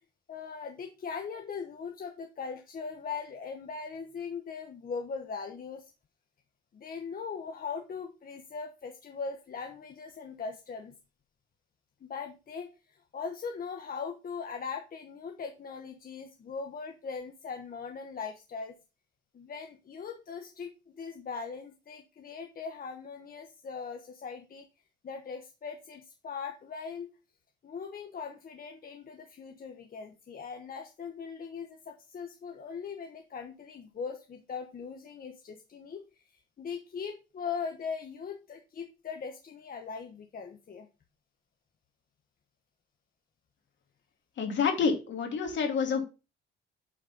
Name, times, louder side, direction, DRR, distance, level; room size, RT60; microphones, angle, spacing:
voice 1, 0.3-5.9 6.7-11.0 12.0-18.7 19.3-24.7 25.0-27.1 27.6-36.2 36.6-40.9, left 5 dB, 45° left, 4 dB, 1.2 m, -40 dB
voice 2, 44.4-46.0, left 5 dB, 65° left, 4 dB, 2.7 m, -28 dB
8.6 x 4.3 x 5.4 m, 0.30 s
cardioid pair, 90°, 20 cm